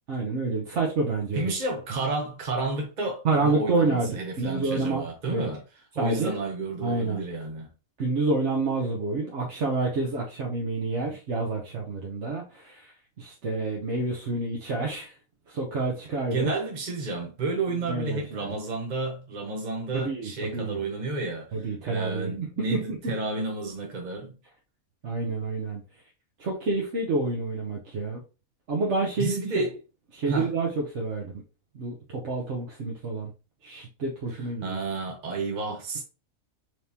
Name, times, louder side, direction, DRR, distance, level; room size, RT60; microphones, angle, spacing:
voice 1, 0.1-1.5 3.2-5.5 6.0-6.3 6.8-7.2 8.0-15.1 15.5-16.5 17.9-18.5 19.9-20.8 21.5-22.9 25.0-25.8 26.4-28.2 28.7-29.7 30.1-31.4 31.7-33.3 33.6-34.8, right 3 dB, 60° right, 1.2 m, -28 dB
voice 2, 1.3-5.6 5.9-7.7 16.3-24.3 29.2-29.7 30.3-30.5 34.4-36.0, right 3 dB, 35° right, 0.9 m, -31 dB
4.6 x 3.5 x 2.8 m
omnidirectional pair, 1.5 m